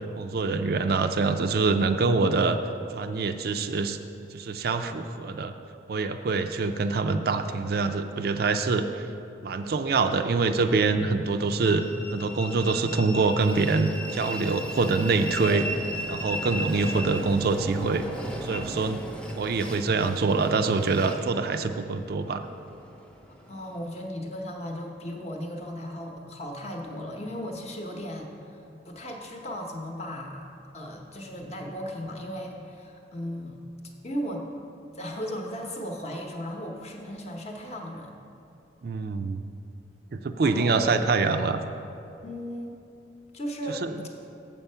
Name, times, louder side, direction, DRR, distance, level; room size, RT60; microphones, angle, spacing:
voice 1, 0.2-2.6 2.9-4.0 4.3-5.5 5.9-9.0 9.4-11.8 12.1-15.7 16.1-18.0 18.4-19.0 19.3-22.5 38.8-39.4 40.1-41.6 43.8-43.9, right 4 dB, 55° right, 8 dB, 0.4 m, -25 dB
Train, 11.6-24.1, equal, 5° left, 0.7 m, -37 dB
voice 2, 23.5-33.6 34.0-34.4 34.9-38.1 40.4-40.9 42.2-42.8 43.3-43.8, equal, 35° left, 1 dB, 0.9 m, -36 dB
7.4 x 7.0 x 5.5 m, 2.6 s
head